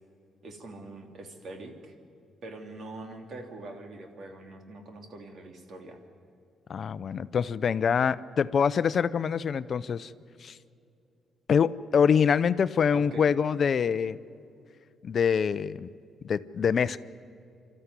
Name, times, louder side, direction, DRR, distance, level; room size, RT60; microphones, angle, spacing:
voice 1, 0.4-1.9 2.4-6.0 12.9-13.2, right 2 dB, 60° right, 4 dB, 3.0 m, -43 dB
voice 2, 6.7-10.1 10.4-10.6 11.5-14.2 15.0-15.9 16.2-17.0, left 7 dB, 50° left, 15 dB, 0.6 m, -25 dB
25.5 x 13.5 x 9.7 m, 2.6 s
cardioid pair, 90°, 0 cm